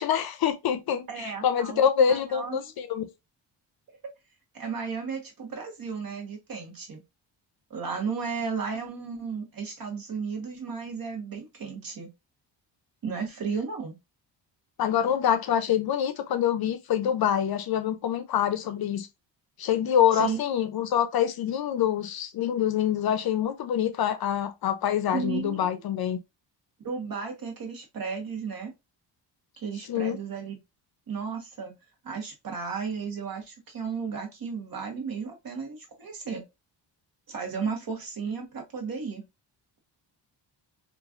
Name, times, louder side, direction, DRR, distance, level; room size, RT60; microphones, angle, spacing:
voice 1, 0.0-3.0 14.8-19.1 19.6-26.2 29.9-30.2, left 9 dB, 55° left, 0.5 m, -25 dB
voice 2, 1.1-3.0 4.5-7.0 7.7-12.1 13.0-14.0 20.1-20.4 25.1-25.8 26.8-28.7 29.6-30.6 31.1-31.7 32.0-36.5 37.3-39.2, right 5 dB, 50° right, 1.2 m, -34 dB
3.0 x 2.4 x 2.4 m
cardioid pair, 110°, 45 cm